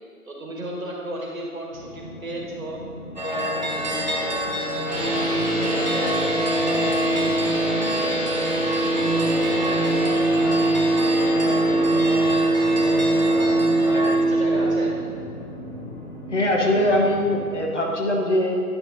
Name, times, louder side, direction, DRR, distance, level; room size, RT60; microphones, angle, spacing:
voice 1, 0.3-2.8 3.2-5.1 5.4-6.2 6.6-8.5 9.1-13.5 13.8-14.9, right 1 dB, 60° right, -2 dB, 1.9 m, -35 dB
sound 1, 1.7-17.6, equal, 10° right, 1.6 m, -38 dB
sound 2, 3.2-14.2, equal, 30° right, 0.8 m, -28 dB
sound 3, 4.9-14.8, right 2 dB, 15° left, 1.8 m, -22 dB
voice 2, 16.3-18.6, left 1 dB, 50° left, 0 dB, 1.2 m, -21 dB
9.9 x 8.2 x 2.8 m, 2.3 s
figure-of-eight pair, 160°, 46 cm